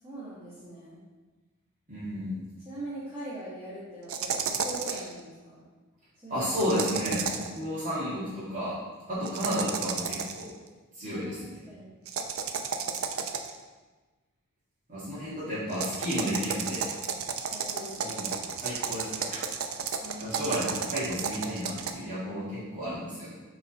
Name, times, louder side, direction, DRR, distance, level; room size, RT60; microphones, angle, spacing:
voice 1, 0.0-1.0 2.6-5.6 6.2-6.4 7.3-7.5 9.1-9.3 11.0-12.0 12.5-13.1 17.5-18.2 20.0-20.9, right 1 dB, 15° right, -12 dB, 1.6 m, -42 dB
voice 2, 1.9-2.4 4.9-5.0 6.3-7.2 7.5-8.7 9.1-10.5 10.9-11.6 14.9-16.9 18.0-18.3 18.6-19.4 20.2-23.3, equal, 40° right, -13 dB, 1.9 m, -32 dB
sound 1, 4.1-5.1 6.6-7.6 9.2-10.5 12.1-13.6 15.7-21.9, right 6 dB, 70° right, 0.5 m, -33 dB
6.8 x 3.9 x 4.2 m, 1.3 s
head